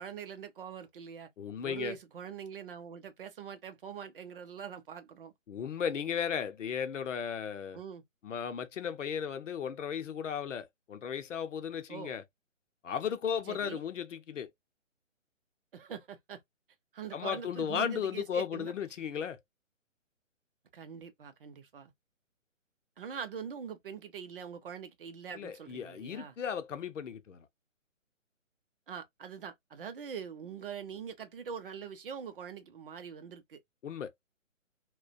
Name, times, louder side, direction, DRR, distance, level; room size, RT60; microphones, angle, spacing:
voice 1, 0.0-1.3 1.6-5.3 7.7-8.0 11.9-12.1 13.5-13.8 15.7-16.4 16.9-18.7 20.7-21.9 23.0-26.4 28.9-33.6, right 7 dB, 45° right, 0.5 m, -43 dB
voice 2, 1.4-2.0 5.5-7.8 8.2-12.2 12.8-14.5 17.1-19.4 25.3-27.4 33.8-34.1, left 7 dB, 70° left, 0.6 m, -35 dB
2.3 x 2.2 x 2.5 m
figure-of-eight pair, 145°, 39 cm